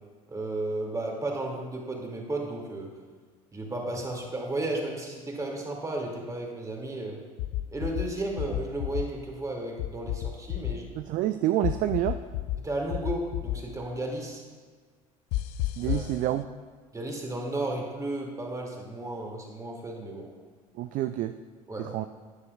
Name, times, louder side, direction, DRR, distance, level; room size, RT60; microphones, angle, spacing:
voice 1, 0.3-2.9 3.5-7.2 7.7-10.9 12.6-14.4 15.8-16.1 16.9-20.3 21.7-21.9, right 2 dB, 15° right, 0 dB, 2.3 m, -33 dB
sound 1, 7.4-8.0 8.4-9.0 9.8-10.7 11.6-12.6 12.9-13.6 15.3-16.1, left 15 dB, 55° left, 0.5 m, -30 dB
voice 2, 11.0-12.2 15.8-16.5 20.8-21.3 21.8-22.1, right 13 dB, 45° right, 10 dB, 0.4 m, -28 dB
13.0 x 9.6 x 2.4 m, 1.5 s
figure-of-eight pair, 65°, 19 cm